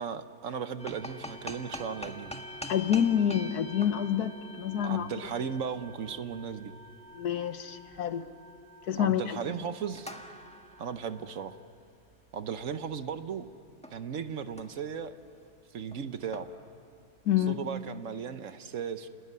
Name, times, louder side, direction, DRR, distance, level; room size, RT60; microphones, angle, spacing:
voice 1, 0.0-2.3 4.8-6.7 9.0-10.1 10.8-11.6 12.3-13.5 13.9-15.2 15.7-16.5 17.4-19.1, right 7 dB, 60° right, 11 dB, 1.2 m, -36 dB
sound 1, 0.8-13.5 13.8-14.2 14.4-14.9 15.2-15.5 15.9-17.4, left 1 dB, 5° left, 1.4 m, -46 dB
voice 2, 2.7-5.1 7.1-8.2 8.9-9.4 17.3-17.6, left 9 dB, 80° left, 11 dB, 1.5 m, -27 dB
29.0 x 19.5 x 9.6 m, 2.3 s
omnidirectional pair, 1.6 m